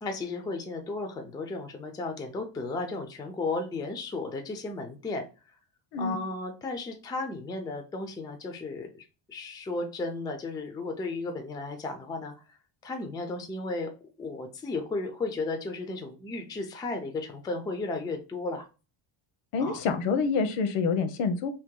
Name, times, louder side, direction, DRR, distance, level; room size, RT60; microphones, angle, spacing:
voice 1, 0.0-5.3 6.0-12.3 12.8-13.9 14.2-18.7 19.6-19.8, left 3 dB, 10° left, 5 dB, 0.3 m, -34 dB
voice 2, 19.5-21.5, left 5 dB, 85° left, 9 dB, 0.8 m, -27 dB
2.9 x 2.8 x 3.6 m, 0.32 s
cardioid pair, 140°, 50 cm